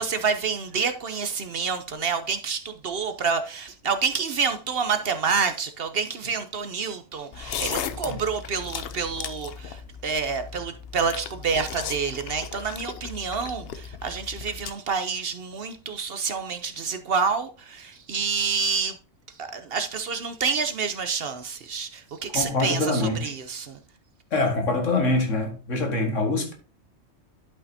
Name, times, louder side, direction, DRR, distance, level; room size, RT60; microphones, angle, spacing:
voice 1, 0.0-19.0 19.3-23.8, right 5 dB, 55° right, 0.8 m, -28 dB
sound 1, 7.3-14.7, left 7 dB, 55° left, 0.8 m, -36 dB
voice 2, 22.3-23.3 24.3-26.5, left 2 dB, 75° left, 2.0 m, -24 dB
11.5 x 5.5 x 2.7 m
omnidirectional pair, 1.3 m